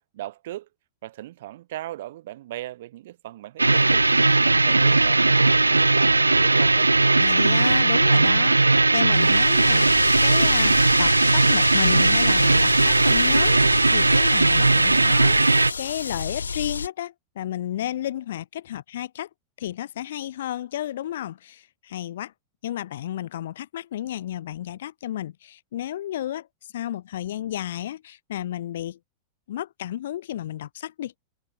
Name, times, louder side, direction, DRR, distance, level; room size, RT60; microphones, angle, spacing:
voice 1, 0.1-0.7 1.0-4.1 4.4-5.4 5.7-6.9, right 15 dB, 55° right, 4.6 m, -38 dB
sound 1, 3.6-15.7, right 3 dB, 80° right, 0.9 m, -18 dB
voice 2, 7.2-19.3 19.6-22.3 22.6-26.5 26.7-29.0 29.5-31.1, left 12 dB, 60° left, 5.4 m, -32 dB
sound 2, 9.1-16.9, left 5 dB, 75° left, 3.3 m, -29 dB
figure-of-eight pair, 90°, 0 cm